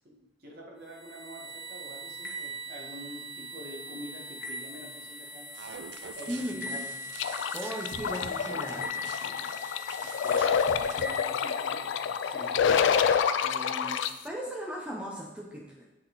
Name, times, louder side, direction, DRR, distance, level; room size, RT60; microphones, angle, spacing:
voice 1, 0.0-5.5 6.1-6.9 10.0-10.5 10.8-12.8 13.4-14.0, equal, 60° right, -2 dB, 1.6 m, -46 dB
sound 1, 0.8-13.0, left 2 dB, 55° left, 1.1 m, -41 dB
sound 2, 5.5-11.0, right 6 dB, 80° right, 0.5 m, -45 dB
voice 2, 6.3-6.8 7.5-9.5 13.8-13.9 14.2-15.8, equal, 5° right, -2 dB, 0.7 m, -37 dB
sound 3, 7.2-14.1, left 7 dB, 85° left, 0.3 m, -27 dB
7.8 x 4.2 x 4.0 m, 1.0 s
head